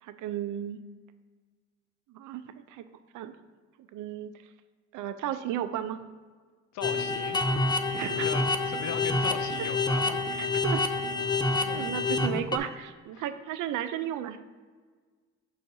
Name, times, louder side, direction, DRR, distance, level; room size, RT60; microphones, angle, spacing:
voice 1, 0.0-0.8 2.1-2.8 3.1-3.3 3.9-4.3 4.9-6.0 7.8-8.3 10.4-10.8 11.7-14.4, right 11 dB, 80° right, 11 dB, 0.5 m, -34 dB
voice 2, 6.7-7.4 8.1-10.5 11.6-12.0 13.1-13.3, left 7 dB, 70° left, 10 dB, 0.5 m, -39 dB
sound 1, 6.8-12.6, left 3 dB, 15° left, 0.4 m, -28 dB
6.3 x 5.6 x 2.7 m, 1.5 s
cardioid pair, 90°, 30 cm